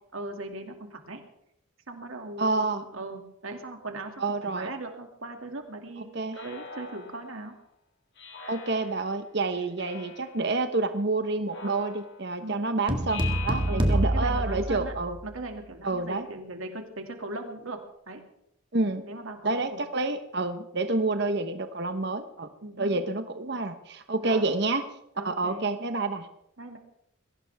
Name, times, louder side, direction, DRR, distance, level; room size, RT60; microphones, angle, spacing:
voice 1, 0.1-1.2 1.9-4.1 4.4-7.5 9.5-9.7 12.4-12.7 13.7-15.0 15.2-18.2 19.0-19.8 22.6-23.1 24.2-24.5 25.2-25.7 26.6-26.8, right 2 dB, 80° right, 4 dB, 2.4 m, -39 dB
voice 2, 2.4-2.8 4.2-4.7 6.1-6.4 8.5-15.2 15.8-16.3 18.7-19.0 19.4-22.5 22.8-24.8 25.2-26.3, right 3 dB, 55° right, 8 dB, 1.1 m, -28 dB
Speech synthesizer, 6.3-7.4 8.2-9.2 9.8-10.4 11.5-12.4 13.1-14.2, left 5 dB, 55° left, 3.0 m, -42 dB
sound 1, 12.9-15.4, right 1 dB, 25° right, 1.8 m, -27 dB
22.0 x 17.0 x 3.6 m, 0.79 s
head